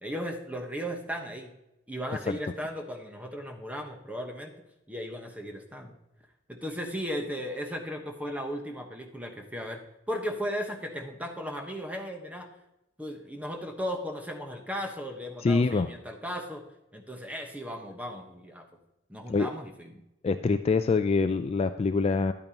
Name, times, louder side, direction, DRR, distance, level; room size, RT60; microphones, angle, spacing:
voice 1, 0.0-1.5 1.9-4.5 4.9-6.0 6.5-12.5 13.0-16.6 16.9-18.7 19.1-20.0, equal, 5° right, 3 dB, 1.1 m, -36 dB
voice 2, 15.4-15.9 19.3-19.5 20.2-22.3, left 4 dB, 30° left, 9 dB, 0.3 m, -25 dB
10.5 x 8.8 x 2.9 m, 0.88 s
head